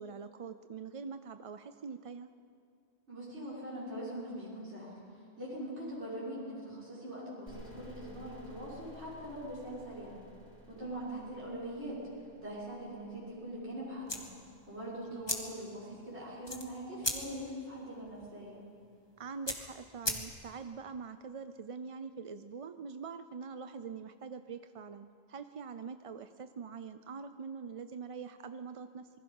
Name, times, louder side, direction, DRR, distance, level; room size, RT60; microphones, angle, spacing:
voice 1, 0.0-2.3 10.8-11.2 15.1-15.3 19.2-29.1, right 5 dB, 45° right, 10 dB, 0.5 m, -44 dB
voice 2, 3.1-10.2 10.7-12.0 12.4-14.3 14.7-18.6, equal, 75° right, -7 dB, 5.9 m, -42 dB
sound 1, 7.5-15.0, equal, 45° left, 6.7 m, -55 dB
sound 2, 14.0-20.7, left 1 dB, 20° left, 1.8 m, -40 dB
27.0 x 21.0 x 5.4 m, 2.3 s
omnidirectional pair, 1.1 m